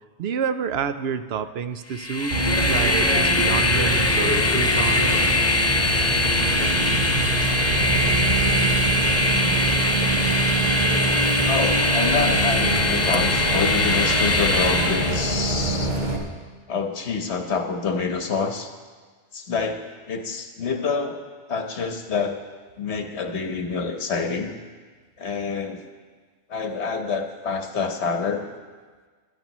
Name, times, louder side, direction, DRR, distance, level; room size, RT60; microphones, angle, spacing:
voice 1, 0.2-2.4 2.6-5.3, right 7 dB, 70° right, 11 dB, 0.8 m, -28 dB
Train, 1.9-15.4, left 2 dB, 25° left, 0.3 m, -22 dB
Bus, 2.3-16.2, right 2 dB, 40° right, 1.6 m, -25 dB
voice 2, 9.2-9.6 11.4-15.9 16.7-18.7 19.3-21.2 21.5-22.3 22.8-24.5 25.2-25.8 26.5-28.5, left 5 dB, 75° left, 5 dB, 1.3 m, -27 dB
19.5 x 11.5 x 3.0 m, 1.5 s
omnidirectional pair, 1.1 m